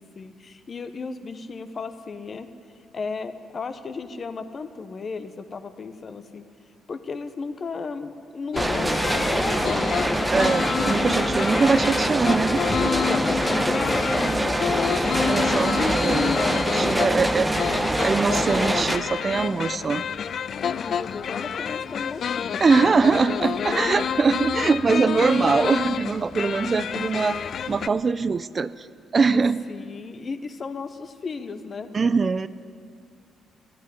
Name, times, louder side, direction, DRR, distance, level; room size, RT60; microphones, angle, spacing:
voice 1, 0.0-2.5 2.9-6.5 6.9-10.2 12.7-15.2 16.3-16.6 16.9-17.2 20.7-22.6 22.9-23.4 23.7-24.0 29.3-29.4 29.7-31.9, left 4 dB, 40° left, 10 dB, 0.9 m, -34 dB
sound 1, 8.5-27.9, left 8 dB, 60° left, 0.4 m, -29 dB
sound 2, 8.6-19.0, right 1 dB, 10° right, 0.8 m, -24 dB
voice 2, 10.3-12.9 14.2-14.5 15.3-16.3 16.7-17.5 18.0-20.0 22.6-28.9 29.1-29.6 31.9-32.5, right 4 dB, 35° right, 15 dB, 0.4 m, -22 dB
12.5 x 10.5 x 9.8 m, 2.4 s
cardioid pair, 90°, 0 cm